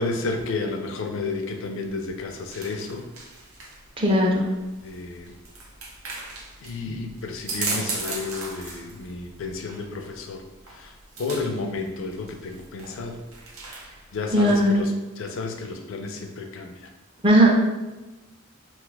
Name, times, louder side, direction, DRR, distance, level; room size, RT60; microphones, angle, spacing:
voice 1, 0.0-3.1 4.8-5.3 6.6-10.4 10.8-10.9 11.2-13.2 14.1-14.9 15.2-16.9, left 3 dB, 65° left, 5 dB, 0.4 m, -31 dB
sound 1, 1.8-14.8, right 3 dB, 85° right, 0.6 m, -38 dB
voice 2, 4.0-4.5 14.3-14.8 17.2-17.5, equal, 25° right, -1 dB, 0.5 m, -17 dB
2.4 x 2.3 x 4.0 m, 1.1 s
head